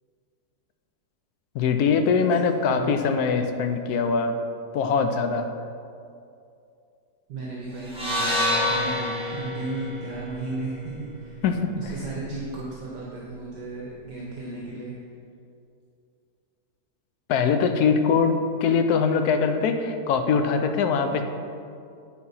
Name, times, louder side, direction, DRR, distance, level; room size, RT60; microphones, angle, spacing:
voice 1, 1.5-4.3 4.7-5.5 11.4-11.9 17.3-21.2, left 5 dB, 70° left, 7 dB, 1.1 m, -22 dB
voice 2, 2.6-2.9 7.3-8.4 8.7-11.4 11.8-14.9, right 3 dB, 75° right, -4 dB, 1.6 m, -35 dB
sound 1, 7.9-12.1, left 1 dB, 5° right, 1.5 m, -28 dB
10.5 x 4.2 x 5.5 m, 2.5 s
omnidirectional pair, 1.9 m